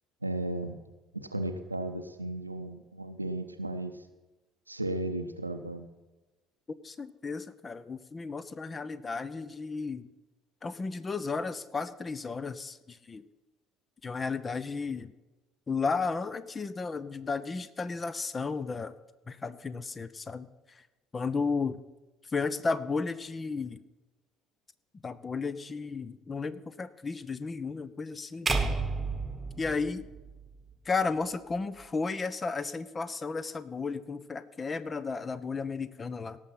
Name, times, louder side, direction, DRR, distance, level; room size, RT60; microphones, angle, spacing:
voice 1, 0.2-0.8 1.1-4.0 4.7-5.9, right 1 dB, 90° right, 8 dB, 0.7 m, -35 dB
voice 2, 6.8-10.1 10.6-13.2 14.0-15.1 15.7-18.9 19.3-20.8 21.1-21.8 22.3-23.8 25.0-28.5 29.6-30.1 30.8-36.4, left 4 dB, 25° left, 16 dB, 0.7 m, -33 dB
sound 1, 28.5-30.7, right 3 dB, 15° right, 1.3 m, -31 dB
17.5 x 6.6 x 5.8 m, 1.1 s
figure-of-eight pair, 55°, 0 cm